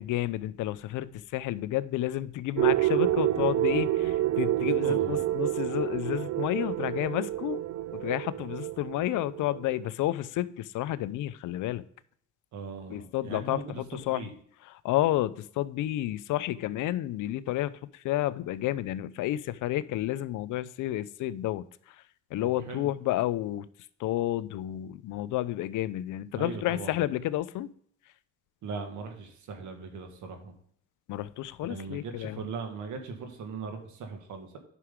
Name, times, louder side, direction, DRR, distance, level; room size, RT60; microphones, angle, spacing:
voice 1, 0.0-7.6 7.9-11.8 12.9-14.3 14.6-21.7 22.3-23.7 24.0-27.7 31.1-32.5, left 14 dB, 80° left, 0.5 m, -31 dB
sound 1, 2.6-9.9, right 14 dB, 60° right, 0.4 m, -28 dB
voice 2, 4.8-5.3 12.5-13.8 14.1-14.3 22.4-22.9 26.3-27.0 28.6-30.5 31.6-34.6, right 4 dB, 75° right, 1.8 m, -39 dB
9.6 x 6.0 x 3.6 m
cardioid pair, 90°, 30 cm